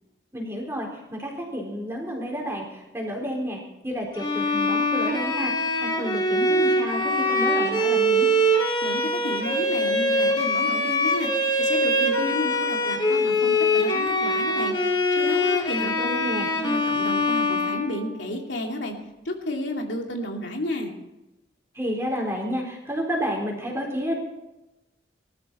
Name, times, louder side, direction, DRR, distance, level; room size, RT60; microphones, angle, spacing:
voice 1, 0.3-8.3 15.8-16.5 21.7-24.1, equal, 15° right, -1 dB, 4.0 m, -30 dB
Bowed string instrument, 4.2-18.4, left 1 dB, 25° left, 2.7 m, -23 dB
voice 2, 8.8-11.3 11.6-14.7 15.1-16.2 16.5-18.9 19.2-20.9, left 1 dB, 80° left, 1 dB, 2.7 m, -31 dB
20.5 x 13.0 x 4.4 m, 0.98 s
head